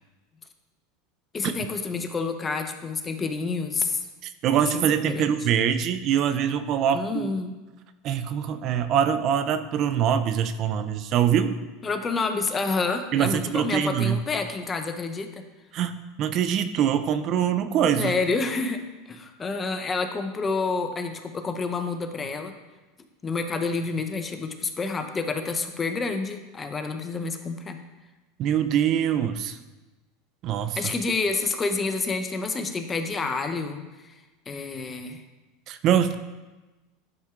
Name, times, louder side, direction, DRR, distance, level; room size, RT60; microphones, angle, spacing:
voice 1, 1.3-4.1 4.7-5.3 6.9-7.5 11.8-15.4 18.0-18.8 19.1-22.5 23.2-27.8 30.8-34.1 34.5-35.2, left 4 dB, 25° left, 7 dB, 0.6 m, -28 dB
voice 2, 4.2-7.3 8.0-11.6 13.1-14.2 15.7-18.1 28.4-29.6 30.4-30.8 35.7-36.2, right 9 dB, 50° right, 11 dB, 0.4 m, -24 dB
10.5 x 4.3 x 2.4 m, 1.2 s
supercardioid pair, 105°, 0 cm